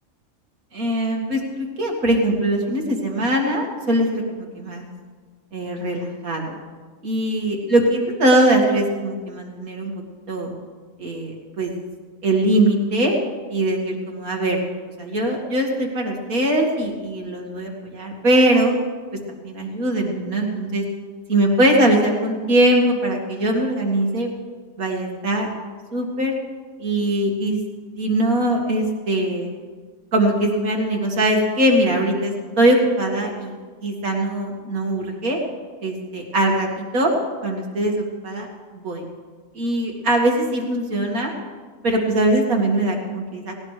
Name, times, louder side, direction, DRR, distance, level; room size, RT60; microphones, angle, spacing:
voice 1, 0.7-4.8 5.5-6.5 7.0-9.9 10.3-10.5 11.0-11.7 12.2-13.1 13.5-14.6 15.0-18.7 19.4-20.8 21.3-24.3 24.8-25.5 25.9-26.3 26.8-27.6 27.9-29.5 30.1-33.6 33.8-35.4 35.8-37.1 37.4-38.5 38.7-39.0 39.5-41.3 41.8-43.6, right 1 dB, 90° right, 1 dB, 2.5 m, -21 dB
18.0 x 18.0 x 3.3 m, 1.5 s
omnidirectional pair, 1.5 m